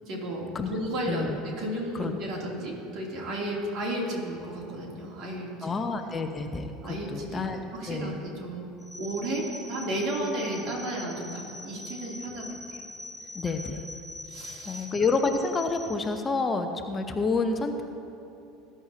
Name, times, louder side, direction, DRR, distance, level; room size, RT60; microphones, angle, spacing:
voice 1, 0.0-1.3 1.6-5.8 6.8-8.7 9.0-12.8 14.3-14.8, right 1 dB, 50° right, -2 dB, 2.9 m, -33 dB
voice 2, 1.0-1.4 1.9-2.1 5.6-7.6 7.9-8.2 13.3-13.8 14.6-17.8, left 4 dB, 25° left, 6 dB, 0.8 m, -29 dB
sound 1, 8.8-15.9, left 1 dB, ahead, 2.3 m, -43 dB
19.5 x 9.7 x 2.8 m, 3.0 s
figure-of-eight pair, 70°, 0 cm